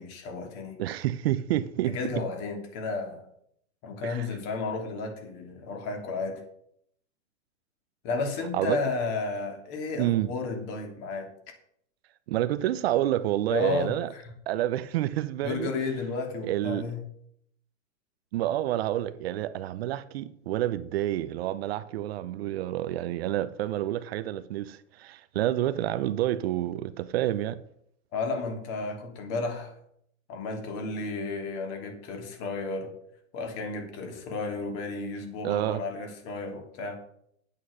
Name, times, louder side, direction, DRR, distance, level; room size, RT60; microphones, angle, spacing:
voice 1, 0.0-0.8 1.9-3.3 3.8-6.4 8.0-11.3 13.5-14.2 15.4-17.0 28.1-29.7 30.3-32.9 33.3-37.0, left 3 dB, 35° left, 2.8 m, -33 dB
voice 2, 0.8-2.0 4.0-4.3 8.5-8.8 10.0-10.3 12.3-14.1 14.5-15.7 16.5-16.9 18.3-27.6 35.4-35.8, right 13 dB, 50° right, 0.7 m, -28 dB
9.5 x 8.7 x 6.4 m
hypercardioid pair, 140°, 40 cm